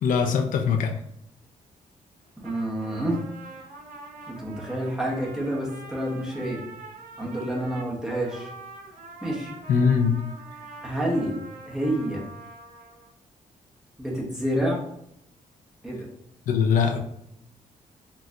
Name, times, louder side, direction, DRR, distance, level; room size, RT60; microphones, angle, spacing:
voice 1, 0.0-1.0 9.7-10.2 16.5-17.0, left 6 dB, 75° left, 5 dB, 0.4 m, -22 dB
Trumpet, 2.2-13.1, right 3 dB, 80° right, 0.6 m, -44 dB
voice 2, 2.4-3.2 4.3-6.6 7.2-8.5 9.2-9.5 10.8-11.4 11.7-12.2 14.0-14.8 15.8-16.1, right 1 dB, 5° right, -4 dB, 0.9 m, -28 dB
4.0 x 2.2 x 2.5 m, 0.75 s
cardioid pair, 140°, 14 cm